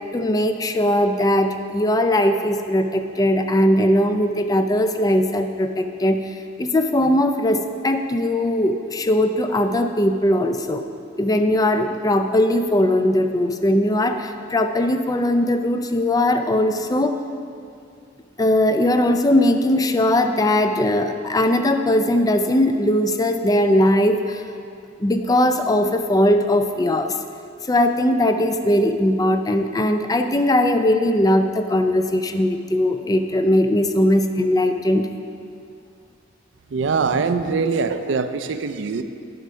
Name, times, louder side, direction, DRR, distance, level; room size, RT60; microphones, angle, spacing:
voice 1, 0.1-10.9 11.2-17.2 18.4-24.4 25.0-27.2 27.6-35.1, left 1 dB, 20° left, 7 dB, 0.4 m, -19 dB
voice 2, 36.7-39.0, right 4 dB, 65° right, 10 dB, 0.4 m, -23 dB
9.5 x 5.2 x 5.6 m, 2.4 s
head